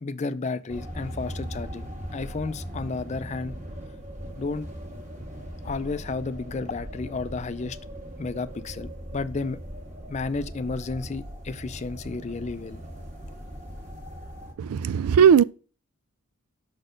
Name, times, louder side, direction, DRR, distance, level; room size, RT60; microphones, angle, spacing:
voice 1, 0.0-3.6 4.4-4.7 5.6-7.8 8.2-9.6 10.1-12.8, left 3 dB, 30° left, 0.4 m, -32 dB
sound 1, 0.7-14.5, equal, 30° right, 1.5 m, -39 dB
voice 2, 14.6-15.4, right 7 dB, 90° right, 0.3 m, -17 dB
6.2 x 4.3 x 5.0 m
head